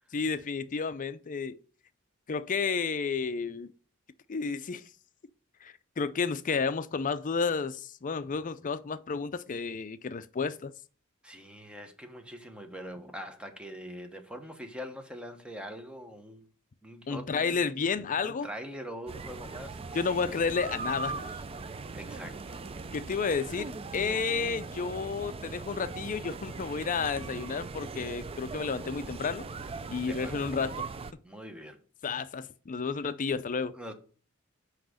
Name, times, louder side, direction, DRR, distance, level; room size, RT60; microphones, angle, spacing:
voice 1, 0.1-1.6 2.3-3.7 4.3-4.8 5.6-10.7 17.1-18.5 19.9-21.3 22.9-29.5 29.9-30.8 32.0-33.7, left 5 dB, 40° left, 0.5 m, -31 dB
voice 2, 11.2-16.5 16.8-17.7 18.2-20.3 21.9-22.6 30.0-30.5 31.2-31.8 33.7-33.9, equal, 5° right, 1.1 m, -43 dB
sound 1, 19.1-31.1, right 4 dB, 25° right, 0.4 m, -40 dB
5.8 x 4.9 x 6.4 m
head